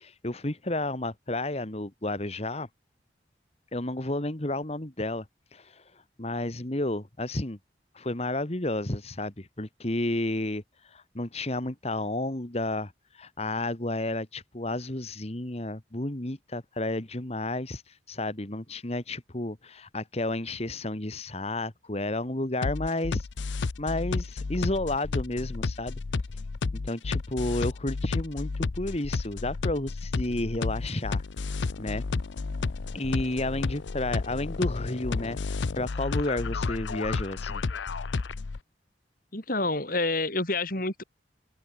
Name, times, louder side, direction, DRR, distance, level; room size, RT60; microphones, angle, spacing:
voice 1, 0.0-2.7 3.7-5.3 5.5-5.8 6.2-7.6 8.0-23.3 23.8-26.0 26.8-31.2 31.8-32.0 32.9-37.6, left 2 dB, 35° left, 1.8 m, -31 dB
sound 1, 22.6-38.6, left 3 dB, 85° left, 0.6 m, -31 dB
voice 2, 39.3-41.0, left 2 dB, 50° left, 5.5 m, -28 dB
head